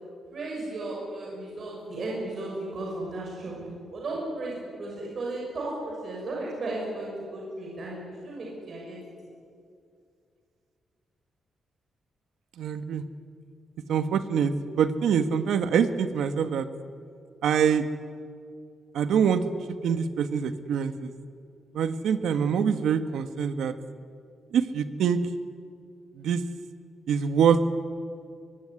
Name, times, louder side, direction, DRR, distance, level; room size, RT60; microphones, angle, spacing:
voice 1, 0.3-9.0, right 2 dB, 40° right, -3 dB, 6.4 m, -35 dB
voice 2, 12.6-13.0 13.9-16.7 17.4-17.8 18.9-19.4 19.8-21.1 21.7-23.7 24.5-25.2 26.2-26.4 27.1-27.6, right 7 dB, 85° right, 9 dB, 1.6 m, -24 dB
24.0 x 22.5 x 9.9 m, 2.3 s
wide cardioid pair, 180°, 0 cm